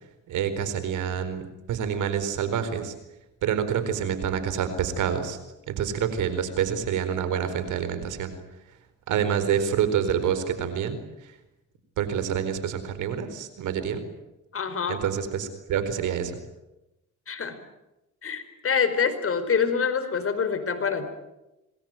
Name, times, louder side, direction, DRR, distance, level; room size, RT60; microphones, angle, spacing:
voice 1, 0.3-1.4 1.7-2.9 3.4-5.4 5.7-8.3 9.1-11.3 12.0-14.0 14.9-16.4, right 8 dB, 80° right, 11 dB, 4.4 m, -27 dB
voice 2, 14.5-15.0 17.3-17.6 18.2-21.1, left 6 dB, 45° left, 8 dB, 4.8 m, -26 dB
26.5 x 20.5 x 9.2 m, 0.95 s
cardioid pair, 90°, 30 cm